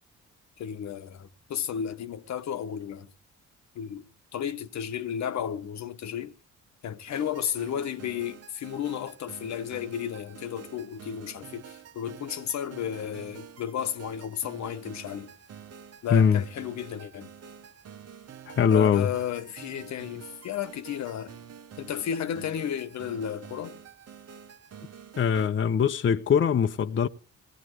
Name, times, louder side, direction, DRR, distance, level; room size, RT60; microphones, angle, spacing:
voice 1, 0.6-3.1 3.7-4.0 4.3-6.3 6.8-15.3 16.0-17.3 18.7-21.3 21.8-23.8, left 9 dB, 65° left, 1.1 m, -33 dB
sound 1, 7.1-25.5, right 8 dB, 55° right, 1.1 m, -48 dB
voice 2, 18.5-19.1 25.2-27.1, left 7 dB, 40° left, 0.8 m, -22 dB
18.5 x 17.5 x 3.0 m
cardioid pair, 90°, 30 cm